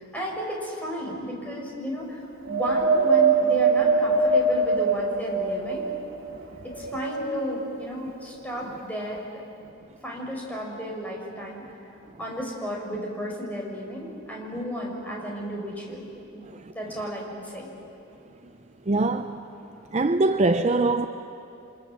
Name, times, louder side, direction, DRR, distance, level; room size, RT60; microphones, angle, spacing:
voice 1, 0.0-5.8 6.6-9.4 10.0-11.6 12.2-16.0 16.3-16.4 16.7-17.7 19.7-19.8, equal, 5° left, 5.4 m, -33 dB
Wind, 2.5-6.0 6.6-7.6 8.4-8.5, right 4 dB, 75° right, 3.1 m, -22 dB
voice 2, 18.9-19.4 19.9-21.1, right 2 dB, 30° right, 0.6 m, -23 dB
29.0 x 25.5 x 7.4 m
head